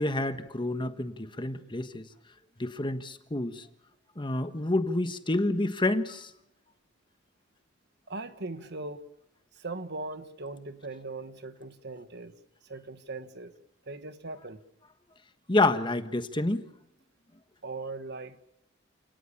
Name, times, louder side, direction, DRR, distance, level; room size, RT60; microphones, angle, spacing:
voice 1, 0.0-2.1 2.6-3.6 4.2-6.3 15.5-16.6, left 2 dB, 25° left, 1.4 m, -28 dB
voice 2, 8.1-9.1 9.5-12.3 12.6-13.6 13.8-14.6 17.6-18.4, right 3 dB, 60° right, 1.5 m, -39 dB
28.5 x 18.5 x 7.2 m
head